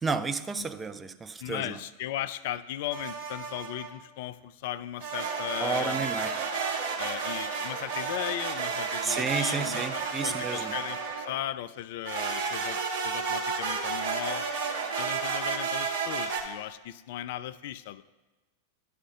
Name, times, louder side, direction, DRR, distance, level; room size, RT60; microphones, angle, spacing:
voice 1, 0.0-1.8 5.6-6.3 9.0-10.7, right 4 dB, 15° right, 9 dB, 0.5 m, -31 dB
voice 2, 1.4-6.0 7.0-14.4 15.0-18.0, left 13 dB, 50° left, 14 dB, 0.3 m, -37 dB
sound 1, 2.9-3.9 5.0-11.4 12.0-16.4, right 5 dB, 50° right, 1.6 m, -32 dB
11.5 x 5.0 x 6.4 m, 1.2 s
figure-of-eight pair, 90°, 0 cm